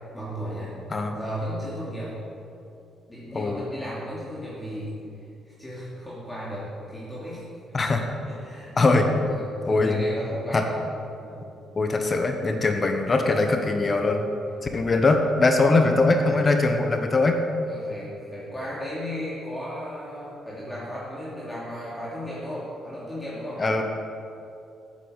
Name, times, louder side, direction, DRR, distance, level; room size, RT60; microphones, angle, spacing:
voice 1, 0.1-0.7 1.1-2.2 3.1-4.9 5.4-7.5 8.2-9.0 9.2-10.8 11.2-11.5 14.5-14.7 15.6-15.8 16.1-16.4 17.6-23.6, equal, 10° left, -8 dB, 2.8 m, -35 dB
voice 2, 3.3-3.7 7.7-8.1 8.8-9.1 9.7-10.0 10.5-10.6 11.8-14.3 14.7-17.4 23.6-23.8, left 3 dB, 35° left, 4 dB, 1.2 m, -21 dB
8.7 x 8.4 x 8.2 m, 2.7 s
cardioid pair, 90°, 0 cm